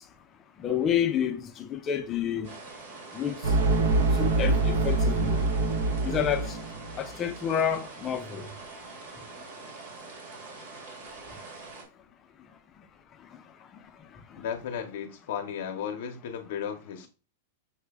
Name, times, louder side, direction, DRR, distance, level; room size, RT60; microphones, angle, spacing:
voice 1, 0.6-1.4 1.7-2.5 3.2-3.3 4.2-5.4 6.0-6.5 7.0-8.5, left 8 dB, 20° left, 0.5 m, -28 dB
sound 1, 2.4-11.8, right 3 dB, 50° right, 1.5 m, -44 dB
sound 2, 3.4-7.0, right 3 dB, 80° right, 0.7 m, -25 dB
voice 2, 14.4-17.1, left 8 dB, 60° left, 0.6 m, -35 dB
5.7 x 2.2 x 3.3 m
supercardioid pair, 160°, 0 cm